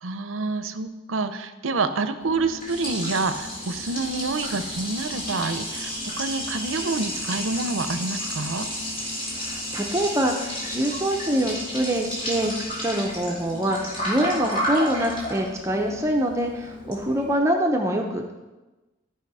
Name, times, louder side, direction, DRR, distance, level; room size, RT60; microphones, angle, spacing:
voice 1, 0.0-8.7, right 3 dB, 85° right, 10 dB, 0.7 m, -28 dB
Liquid, 2.2-17.4, equal, 45° left, 2.8 m, -32 dB
voice 2, 9.3-12.6 12.8-18.3, right 1 dB, 15° right, 2 dB, 0.6 m, -25 dB
13.0 x 4.9 x 4.8 m, 1.1 s
head